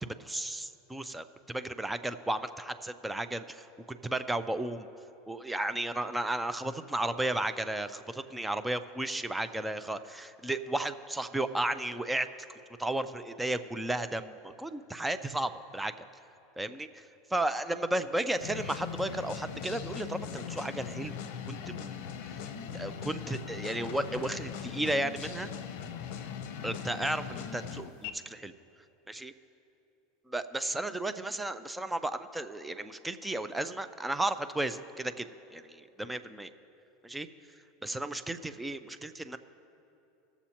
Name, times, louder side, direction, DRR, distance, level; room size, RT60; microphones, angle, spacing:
voice 1, 0.0-4.9 5.3-12.3 12.8-15.9 16.6-17.0 17.3-21.1 21.5-22.1 22.7-25.5 26.6-28.5 29.1-29.3 30.3-35.3 35.5-36.5 37.0-37.3 37.8-39.4, right 1 dB, 5° right, 11 dB, 0.4 m, -34 dB
sound 1, 18.4-28.1, left 7 dB, 65° left, 0.7 m, -40 dB
20.5 x 7.0 x 2.9 m, 2.9 s
supercardioid pair, 140°, 0 cm